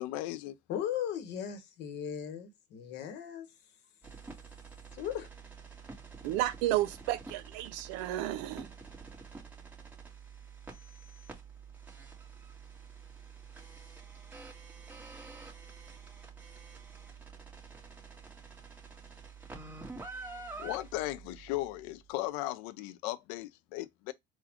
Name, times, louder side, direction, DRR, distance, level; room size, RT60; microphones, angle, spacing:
voice 1, 0.0-0.5 20.6-24.1, left 16 dB, 80° left, 0.4 m, -37 dB
voice 2, 0.7-3.5 4.9-5.3, left 9 dB, 55° left, 1.0 m, -37 dB
sound 1, 4.0-21.9, right 4 dB, 5° right, 1.5 m, -48 dB
voice 3, 6.2-8.7, right 15 dB, 80° right, 0.7 m, -32 dB
4.1 x 2.2 x 2.8 m
cardioid pair, 130°, 21 cm